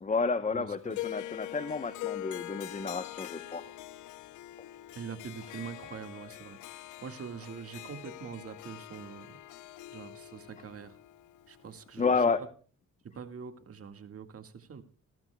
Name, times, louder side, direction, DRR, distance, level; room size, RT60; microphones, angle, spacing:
voice 1, 0.0-3.6 12.0-12.4, left 4 dB, 25° left, 11 dB, 0.9 m, -30 dB
voice 2, 0.5-1.0 5.0-9.4 9.9-11.0 11.5-12.3 13.1-14.8, right 6 dB, 50° right, 9 dB, 1.9 m, -44 dB
Harp, 0.9-12.2, left 15 dB, 80° left, 0.7 m, -44 dB
29.0 x 12.0 x 2.3 m, 0.42 s
cardioid pair, 90°, 30 cm